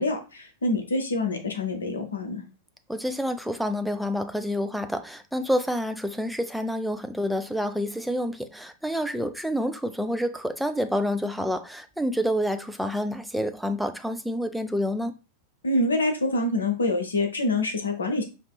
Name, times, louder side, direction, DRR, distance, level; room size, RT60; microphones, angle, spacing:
voice 1, 0.0-2.4 15.6-18.2, left 2 dB, 75° left, 0.8 m, -26 dB
voice 2, 2.9-15.2, equal, ahead, 0.4 m, -28 dB
5.2 x 2.9 x 2.3 m
figure-of-eight pair, 90°, 0 cm